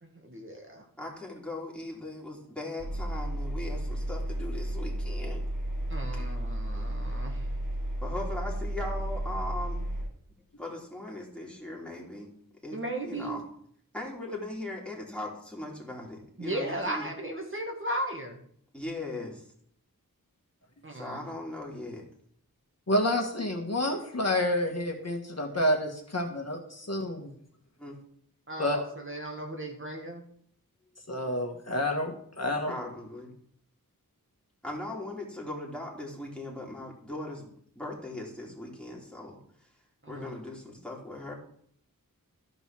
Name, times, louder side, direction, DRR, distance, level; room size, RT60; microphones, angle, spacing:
voice 1, 0.0-0.8 5.9-7.5 12.7-13.4 16.4-18.4 20.8-21.2 28.5-30.2 40.0-40.3, right 1 dB, 35° right, 1 dB, 1.9 m, -36 dB
voice 2, 1.0-5.4 6.1-6.3 8.0-9.9 10.6-12.3 12.6-13.4 13.9-17.1 18.7-19.4 20.9-22.1 27.8-27.9 32.4-33.3 34.6-37.5 37.8-39.4 40.1-41.3, left 1 dB, 5° left, -3 dB, 3.5 m, -39 dB
Engine, 2.8-10.1, right 1 dB, 80° right, 4.1 m, -33 dB
voice 3, 22.9-27.3 28.6-28.8 31.1-32.7, left 1 dB, 45° left, 2 dB, 1.6 m, -29 dB
13.5 x 5.4 x 6.0 m, 0.64 s
wide cardioid pair, 65°, 35 cm